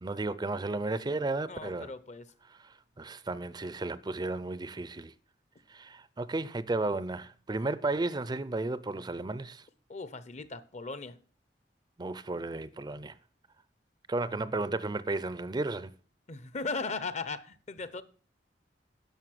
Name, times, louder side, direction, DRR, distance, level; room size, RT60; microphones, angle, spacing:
voice 1, 0.0-1.9 2.6-5.1 5.7-9.6 12.0-13.1 14.1-15.9, right 2 dB, 25° right, 0.5 m, -33 dB
voice 2, 1.5-2.3 9.9-11.2 16.3-18.0, left 4 dB, 40° left, 0.8 m, -37 dB
11.0 x 6.8 x 7.6 m
head